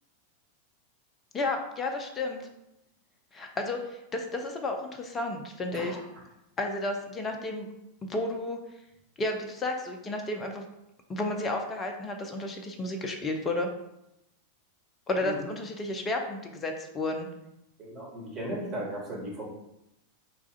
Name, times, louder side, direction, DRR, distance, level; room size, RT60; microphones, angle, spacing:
voice 1, 1.3-2.4 3.3-6.0 6.6-7.7 8.0-8.6 9.2-10.6 11.1-13.7 15.1-17.3, left 2 dB, 20° left, 3 dB, 0.5 m, -32 dB
voice 2, 17.8-19.5, right 1 dB, 25° right, -4 dB, 1.3 m, -36 dB
3.2 x 2.4 x 3.8 m, 0.86 s
figure-of-eight pair, 90°, 0 cm